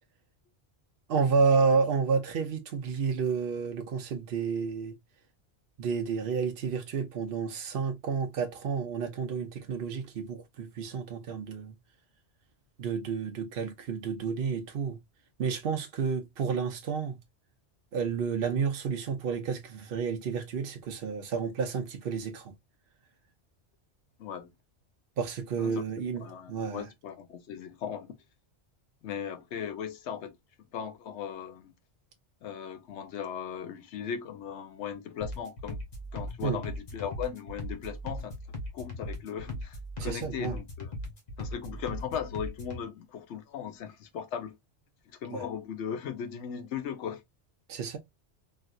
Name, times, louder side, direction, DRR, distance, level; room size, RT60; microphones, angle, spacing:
voice 1, 1.1-5.0 5.8-11.7 12.8-15.0 15.4-17.2 17.9-22.5 25.2-26.8 36.4-36.6 40.0-40.6 45.3-45.4 47.7-48.0, right 5 dB, 60° right, 0.7 m, -30 dB
voice 2, 24.2-24.5 25.6-25.8 26.2-28.2 29.0-30.4 30.7-31.7 32.4-35.8 36.1-38.4 38.7-40.9 41.4-44.6 45.1-47.2, left 8 dB, 80° left, 0.9 m, -38 dB
sound 1, 35.2-42.8, left 1 dB, 40° left, 1.0 m, -39 dB
3.2 x 2.7 x 2.3 m
omnidirectional pair, 1.2 m